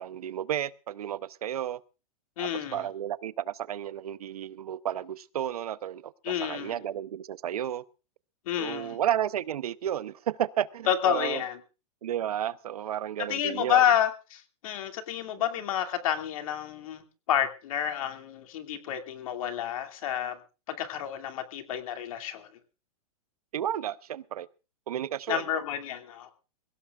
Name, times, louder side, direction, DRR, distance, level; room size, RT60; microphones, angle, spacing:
voice 1, 0.0-1.8 2.4-7.8 8.6-11.4 12.0-13.8 23.5-24.5 24.9-25.4, right 11 dB, 85° right, 0.9 m, -32 dB
voice 2, 2.4-2.9 6.2-6.8 8.5-9.0 10.9-11.6 13.2-20.4 20.7-22.5 25.3-26.3, left 10 dB, 65° left, 2.6 m, -29 dB
23.0 x 17.0 x 2.5 m
hypercardioid pair, 145°, 19 cm